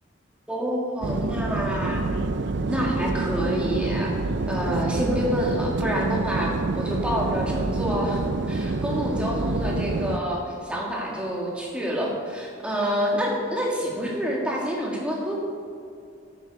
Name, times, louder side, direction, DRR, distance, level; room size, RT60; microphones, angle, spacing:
voice 1, 0.5-2.1 2.7-4.1 4.5-15.3, equal, 5° right, -3 dB, 1.9 m, -28 dB
sound 1, 1.0-10.2, right 3 dB, 60° right, 0.5 m, -27 dB
11.0 x 9.0 x 4.7 m, 2.4 s
head